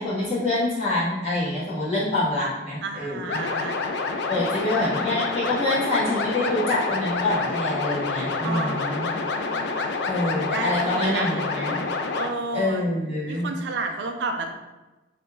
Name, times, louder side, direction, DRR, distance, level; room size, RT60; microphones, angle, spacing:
voice 1, 0.0-3.4 4.3-9.1 10.0-11.8 12.5-13.5, left 1 dB, 35° left, -9 dB, 1.3 m, -26 dB
voice 2, 2.8-3.8 4.3-4.9 8.4-11.7 12.1-12.9 13.2-14.6, right 3 dB, 70° right, 5 dB, 0.4 m, -33 dB
sound 1, 3.3-12.3, left 4 dB, 65° left, 0.3 m, -28 dB
3.4 x 2.5 x 3.0 m, 1.1 s
head